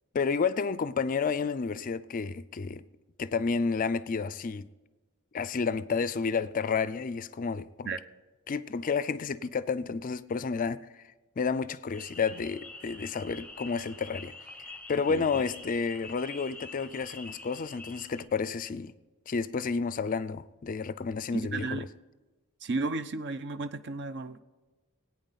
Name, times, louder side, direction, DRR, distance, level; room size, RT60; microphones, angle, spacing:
voice 1, 0.1-2.8 3.2-4.7 5.3-7.9 8.5-10.8 11.4-14.3 14.9-18.9 19.3-21.9, left 5 dB, 40° left, 0.4 m, -30 dB
sound 1, 11.9-18.2, left 2 dB, 5° left, 0.8 m, -46 dB
voice 2, 15.1-15.4 21.3-21.8 22.6-24.4, right 3 dB, 55° right, 0.6 m, -33 dB
20.5 x 8.9 x 4.1 m
head